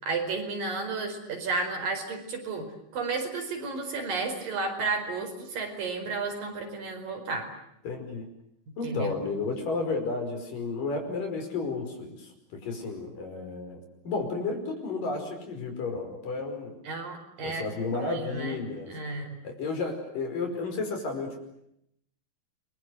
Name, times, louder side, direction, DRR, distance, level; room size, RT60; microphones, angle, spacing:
voice 1, 0.0-7.5 8.8-9.1 16.9-17.7 17.9-18.6 18.9-19.4, right 3 dB, 75° right, 4 dB, 6.6 m, -32 dB
voice 2, 7.9-8.3 8.8-13.8 14.0-16.8 17.4-19.0 19.4-21.4, left 3 dB, 70° left, 5 dB, 6.9 m, -32 dB
29.5 x 23.5 x 8.0 m, 0.76 s
omnidirectional pair, 3.9 m